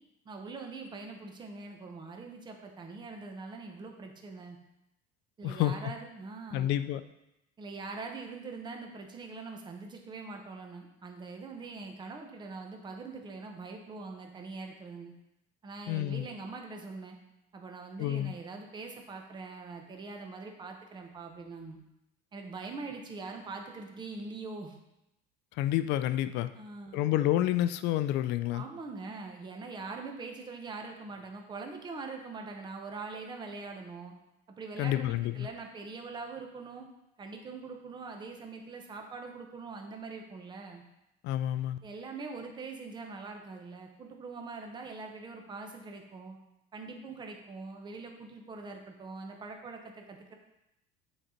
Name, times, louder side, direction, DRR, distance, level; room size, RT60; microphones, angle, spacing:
voice 1, 0.2-4.6 5.4-6.7 7.6-15.1 15.6-17.2 17.5-21.8 22.3-24.8 26.5-27.1 28.5-34.1 34.5-36.9 37.2-40.8 41.8-46.4 46.7-50.4, right 4 dB, 20° right, 3 dB, 0.9 m, -43 dB
voice 2, 5.4-5.9 6.5-7.0 15.9-16.3 18.0-18.4 25.6-26.5 26.9-28.6 34.8-35.5 41.2-41.8, left 13 dB, 60° left, 12 dB, 0.5 m, -29 dB
7.9 x 4.0 x 4.4 m, 0.87 s
cardioid pair, 135°, 20 cm